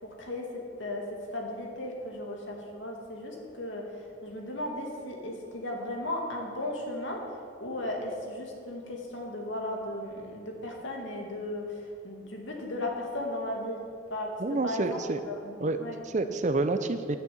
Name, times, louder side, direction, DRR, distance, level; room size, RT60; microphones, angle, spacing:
voice 1, 1.3-7.2 7.6-13.8 14.1-14.3 14.6-15.0 15.3-16.0, left 1 dB, 65° left, 0 dB, 2.1 m, -36 dB
voice 2, 14.4-15.2 15.6-15.8 16.0-17.2, right 2 dB, 35° right, 9 dB, 0.5 m, -28 dB
10.5 x 6.7 x 8.6 m, 2.4 s
head